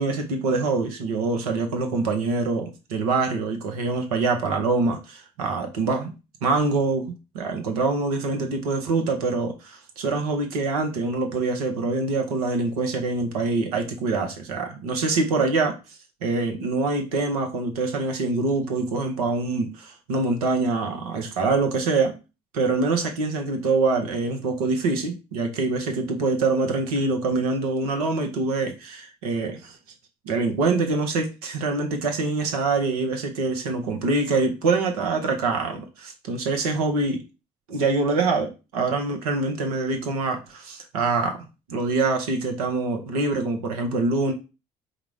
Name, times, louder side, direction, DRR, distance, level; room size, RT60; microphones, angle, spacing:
voice 1, 0.0-6.1 6.4-15.8 16.2-22.1 22.5-29.7 30.3-37.2 37.7-44.3, right 3 dB, 80° right, 5 dB, 0.8 m, -25 dB
4.8 x 2.1 x 4.7 m, 0.29 s
figure-of-eight pair, 45°, 19 cm